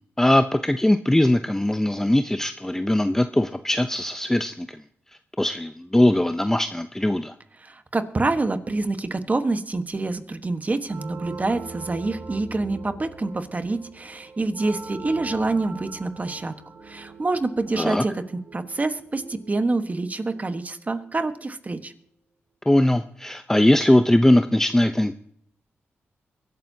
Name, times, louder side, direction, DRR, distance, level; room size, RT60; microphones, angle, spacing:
voice 1, 0.2-4.8 5.4-7.3 17.8-18.0 22.7-25.2, left 1 dB, 10° left, 9 dB, 0.6 m, -20 dB
voice 2, 7.6-18.2 18.5-21.9, right 3 dB, 35° right, 9 dB, 1.3 m, -26 dB
sound 1, 10.8-21.3, right 3 dB, 70° right, 2.3 m, -42 dB
23.0 x 12.0 x 2.8 m, 0.67 s
cardioid pair, 70°, 5 cm